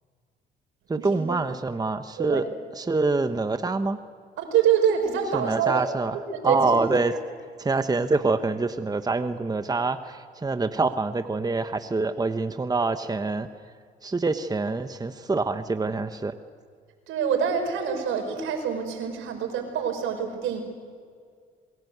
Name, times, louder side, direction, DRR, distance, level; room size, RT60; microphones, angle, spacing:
voice 1, 0.9-2.5 2.7-4.0 5.3-6.2 6.4-7.1 7.6-13.5 14.0-16.3, right 3 dB, 20° right, 9 dB, 1.1 m, -25 dB
voice 2, 4.4-5.9 6.3-6.9 17.1-20.6, right 8 dB, 85° right, 4 dB, 5.7 m, -25 dB
28.0 x 22.5 x 8.2 m, 2.1 s
cardioid pair, 90°, 20 cm